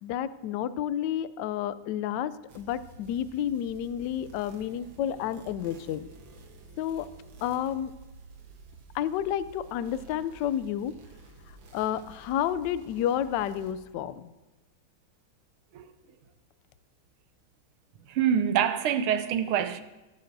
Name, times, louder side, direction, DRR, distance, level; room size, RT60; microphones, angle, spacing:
voice 1, 0.0-6.1 6.8-7.1 7.4-7.9 8.9-11.0 11.7-14.3, left 10 dB, 75° left, 1.0 m, -30 dB
sound 1, 2.5-13.7, right 2 dB, 70° right, 1.9 m, -51 dB
voice 2, 18.1-19.8, right 9 dB, 90° right, 1.6 m, -26 dB
20.0 x 12.5 x 2.6 m
omnidirectional pair, 2.3 m